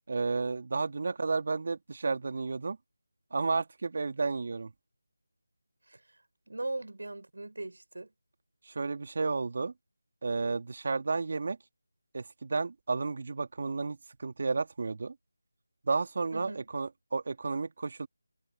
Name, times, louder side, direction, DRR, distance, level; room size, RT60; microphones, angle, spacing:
voice 1, 0.1-2.8 3.3-4.7 8.7-9.7 10.2-11.6 12.1-15.1 15.9-18.1, right 4 dB, 45° right, 2.4 m, -32 dB
voice 2, 6.5-8.1 16.3-16.6, right 2 dB, 70° right, 4.5 m, -39 dB
figure-of-eight pair, 170°, 0 cm